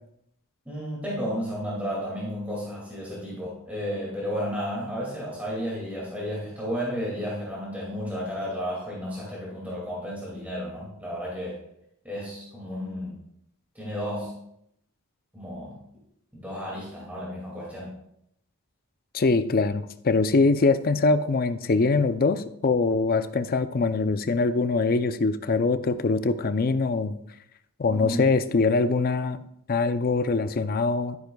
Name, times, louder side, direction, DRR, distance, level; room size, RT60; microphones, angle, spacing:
voice 1, 0.7-11.6 12.0-13.2 13.7-14.4 15.3-15.8 16.3-17.9 27.9-28.3, equal, 5° right, -6 dB, 2.3 m, -32 dB
voice 2, 19.1-27.2 27.8-29.4 29.7-31.2, left 3 dB, 45° left, 11 dB, 0.5 m, -23 dB
12.0 x 9.6 x 2.3 m, 0.76 s
head